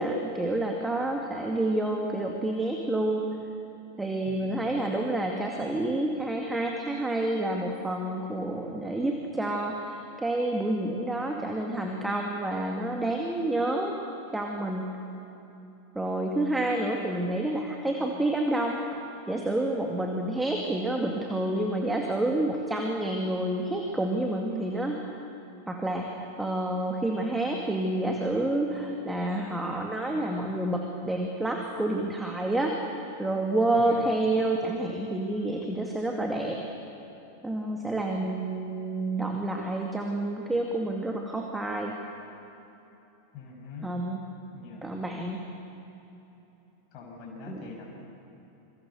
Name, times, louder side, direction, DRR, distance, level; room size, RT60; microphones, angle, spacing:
voice 1, 0.0-3.4 4.0-14.0 14.3-14.9 15.9-18.8 19.3-25.3 25.7-36.6 37.4-42.0 43.8-44.2 44.8-45.4 47.5-47.7, right 1 dB, 5° right, 1 dB, 2.2 m, -29 dB
voice 2, 4.2-4.7 33.8-34.1 43.3-43.9 44.5-44.8 46.9-48.0, left 4 dB, 40° left, -1 dB, 6.3 m, -44 dB
27.5 x 24.0 x 6.9 m, 3.0 s
figure-of-eight pair, 90°, 0 cm